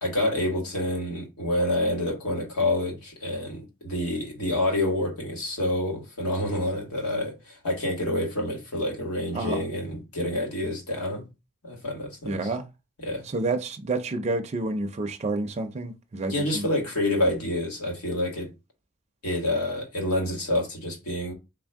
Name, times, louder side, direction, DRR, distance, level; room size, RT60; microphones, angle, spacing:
voice 1, 0.0-11.2 11.6-12.4 13.0-13.2 16.3-18.5 19.2-21.3, left 1 dB, 90° left, 1.6 m, -28 dB
voice 2, 12.2-12.7 13.2-16.7, right 2 dB, 30° right, 0.4 m, -29 dB
3.8 x 2.6 x 3.4 m
head